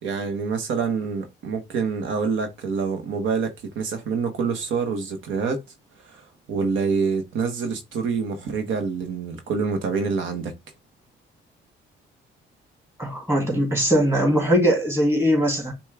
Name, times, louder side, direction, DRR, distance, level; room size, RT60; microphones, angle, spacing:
voice 1, 0.0-5.6 6.0-10.5, right 5 dB, 80° right, 1.0 m, -26 dB
voice 2, 13.0-15.7, equal, 10° right, 2.0 m, -20 dB
5.4 x 2.3 x 3.3 m
cardioid pair, 90°, 20 cm